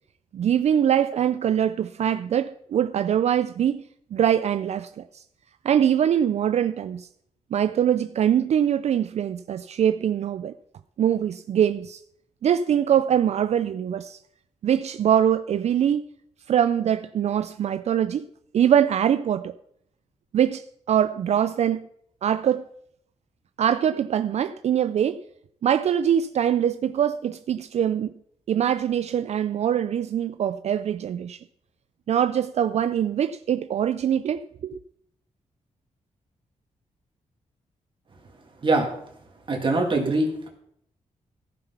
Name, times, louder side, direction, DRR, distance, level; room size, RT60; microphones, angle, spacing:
voice 1, 0.3-5.2 5.6-7.1 7.5-10.5 11.0-12.0 12.4-14.2 14.6-16.0 16.5-18.2 18.5-19.6 20.3-21.9 22.2-22.7 23.6-25.2 25.6-28.1 28.5-31.4 32.1-34.7, right 9 dB, 60° right, 0.4 m, -23 dB
voice 2, 39.5-40.5, right 2 dB, 40° right, 2.1 m, -23 dB
14.5 x 5.9 x 5.6 m
wide cardioid pair, 115°, 13 cm